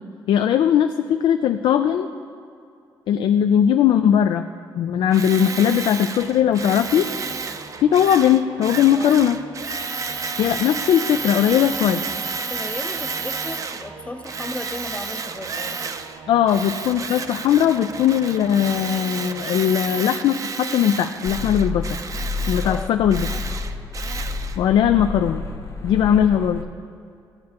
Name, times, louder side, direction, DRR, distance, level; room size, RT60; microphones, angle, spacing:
voice 1, 0.3-2.1 3.1-4.5 4.8-7.1 7.8-9.4 10.4-12.0 16.3-21.9 22.5-23.3 24.6-25.4 25.8-26.6, left 9 dB, 75° left, 7 dB, 0.4 m, -19 dB
Tools, 5.1-13.9 14.2-16.2 16.5-24.6, right 5 dB, 40° right, 0.5 m, -31 dB
Singing / Musical instrument, 6.2-20.0, right 5 dB, 75° right, 0.7 m, -43 dB
voice 2, 8.9-9.2 12.5-16.0 22.6-23.0, left 2 dB, 15° left, 8 dB, 0.6 m, -35 dB
sound 1, 21.2-26.6, left 3 dB, 40° left, 0.9 m, -30 dB
14.5 x 7.5 x 2.9 m, 2.5 s
cardioid pair, 85°, 8 cm